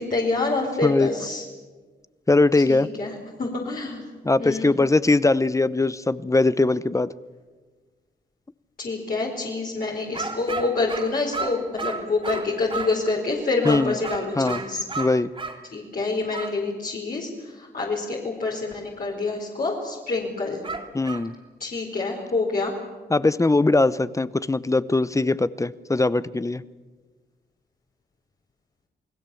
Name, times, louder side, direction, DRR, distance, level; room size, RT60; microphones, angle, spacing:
voice 1, 0.0-1.4 2.7-3.1 3.4-4.0 4.4-4.7 8.8-14.8 15.7-20.6 21.6-22.7, left 3 dB, 55° left, -3 dB, 4.5 m, -27 dB
voice 2, 2.3-2.9 4.2-7.1 13.6-13.9 14.4-14.6 15.0-15.3 20.9-21.3 23.1-26.6, left 2 dB, 15° left, 17 dB, 0.7 m, -21 dB
sound 1, 10.1-13.0 13.6-15.6 16.3-16.6 20.6-21.3, right 4 dB, 30° right, 3.2 m, -33 dB
29.0 x 19.5 x 7.1 m, 1.4 s
cardioid pair, 80°, 18 cm